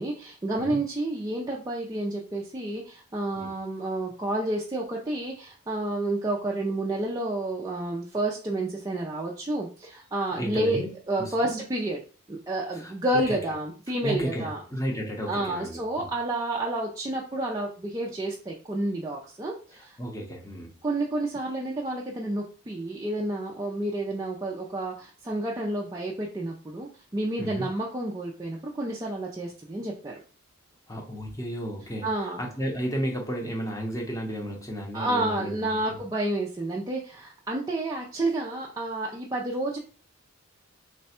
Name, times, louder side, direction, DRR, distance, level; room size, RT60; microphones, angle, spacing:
voice 1, 0.0-10.8 11.1-12.0 12.3-14.6 15.3-20.0 20.8-30.2 32.0-32.4 34.9-39.8, right 1 dB, 15° right, -3 dB, 0.4 m, -30 dB
voice 2, 10.4-10.9 11.2-11.7 12.7-12.9 13.3-13.4 14.0-16.1 20.0-20.7 27.4-27.7 30.9-36.0, equal, 15° left, 1 dB, 0.7 m, -33 dB
3.3 x 2.2 x 4.2 m, 0.39 s
head